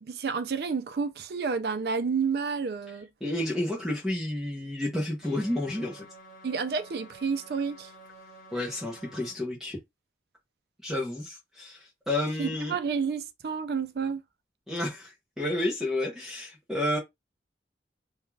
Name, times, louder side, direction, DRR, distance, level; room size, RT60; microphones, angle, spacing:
voice 1, 0.0-3.1 6.4-7.9 12.4-14.2, right 5 dB, 60° right, 0.4 m, -30 dB
voice 2, 3.2-6.1 8.5-9.8 10.8-12.8 14.7-17.0, left 1 dB, 5° right, 0.6 m, -31 dB
sound 1, 5.2-9.3, right 1 dB, 45° left, 1.0 m, -50 dB
2.3 x 2.3 x 3.1 m
head